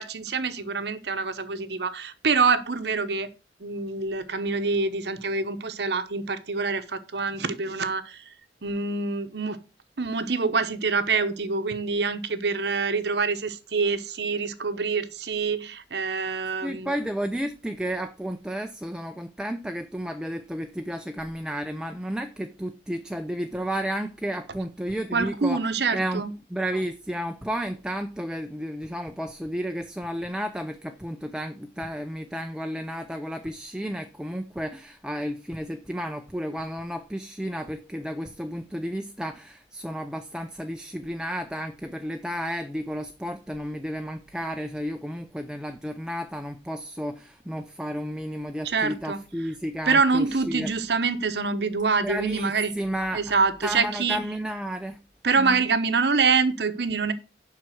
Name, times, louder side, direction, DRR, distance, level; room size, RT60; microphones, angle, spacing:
voice 1, 0.0-3.3 3.6-8.2 8.6-9.6 10.0-16.9 25.1-26.3 48.6-49.2 49.9-52.7 53.1-54.2 55.2-57.1, right 4 dB, 65° right, 0.9 m, -25 dB
voice 2, 16.6-26.2 26.5-50.7 52.0-53.3 53.6-55.0 55.3-55.7, equal, 5° right, 0.5 m, -32 dB
7.5 x 5.7 x 6.4 m
head